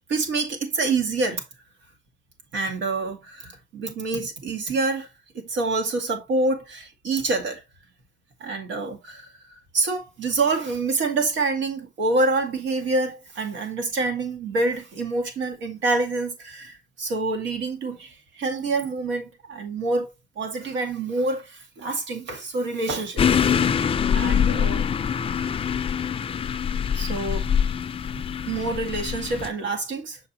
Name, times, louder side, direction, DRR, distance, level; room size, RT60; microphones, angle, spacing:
voice 1, 0.1-1.4 2.5-5.1 5.3-7.6 8.4-9.3 9.7-23.3 24.1-24.9 27.0-27.5 28.5-30.2, right 3 dB, 90° right, 2.0 m, -27 dB
sound 1, 23.2-29.5, left 7 dB, 30° left, 0.4 m, -24 dB
6.8 x 5.0 x 2.9 m
cardioid pair, 110°, 19 cm